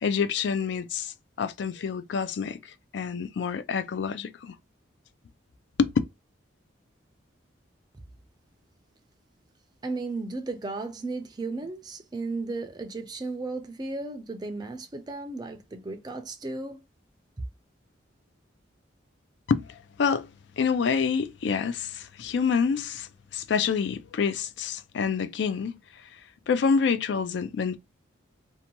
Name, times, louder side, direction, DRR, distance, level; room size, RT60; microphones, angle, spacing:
voice 1, 0.0-2.6 2.9-4.5 5.8-5.9 19.5-19.7 20.0-20.3 20.6-25.8 26.5-27.8, left 6 dB, 65° left, 0.3 m, -27 dB
voice 2, 9.8-16.8, right 3 dB, 20° right, 0.3 m, -35 dB
2.7 x 2.2 x 2.8 m
head